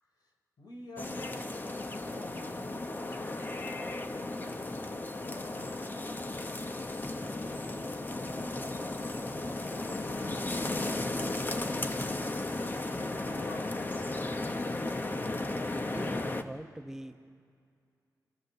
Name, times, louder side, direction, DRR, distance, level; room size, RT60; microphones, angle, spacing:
voice 1, 0.6-1.6 1.9-3.5 4.1-5.9 10.1-12.5 13.0-13.8, left 2 dB, 75° left, 1 dB, 3.9 m, -51 dB
sound 1, 1.0-16.4, left 2 dB, 30° left, 1.0 m, -35 dB
voice 2, 15.9-17.3, right 1 dB, 5° right, 5 dB, 1.0 m, -43 dB
29.5 x 14.5 x 6.8 m, 2.3 s
wide cardioid pair, 115°, 7 cm